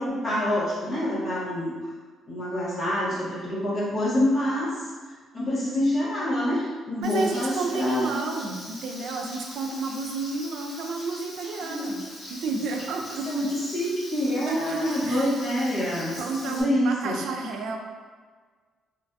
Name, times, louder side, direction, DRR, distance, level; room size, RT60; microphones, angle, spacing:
voice 1, 0.0-1.9 2.3-4.8 5.3-8.1 11.6-11.9 13.3-16.2 16.5-17.1, left 1 dB, 35° left, -8 dB, 0.8 m, -26 dB
Frying (food), 7.0-16.6, left 1 dB, 65° left, 1.1 m, -42 dB
voice 2, 7.0-13.3 14.5-15.3 16.1-17.8, right 3 dB, 65° right, 3 dB, 0.3 m, -31 dB
3.1 x 2.5 x 2.3 m, 1.5 s
cardioid pair, 150°, 0 cm